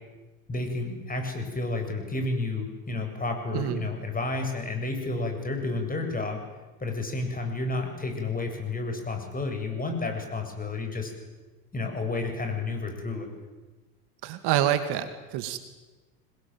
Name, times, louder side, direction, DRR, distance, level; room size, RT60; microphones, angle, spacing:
voice 1, 0.5-6.4 6.8-11.1 11.7-13.3, left 3 dB, 20° left, 4 dB, 7.9 m, -31 dB
voice 2, 3.5-3.9 14.2-15.6, right 11 dB, 55° right, 10 dB, 2.5 m, -27 dB
26.5 x 21.0 x 9.2 m, 1.2 s
hypercardioid pair, 85°, 47 cm